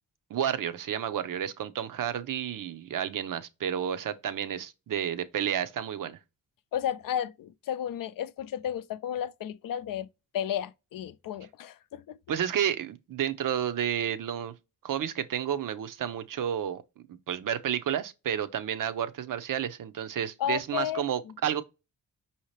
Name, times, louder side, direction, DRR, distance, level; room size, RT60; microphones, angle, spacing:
voice 1, 0.3-6.2 12.3-14.5 14.8-16.8 17.3-21.6, right 9 dB, 70° right, 0.6 m, -31 dB
voice 2, 6.7-10.1 10.3-12.2 20.4-21.1, left 10 dB, 75° left, 0.5 m, -33 dB
5.6 x 2.8 x 3.1 m
wide cardioid pair, 120°, 34 cm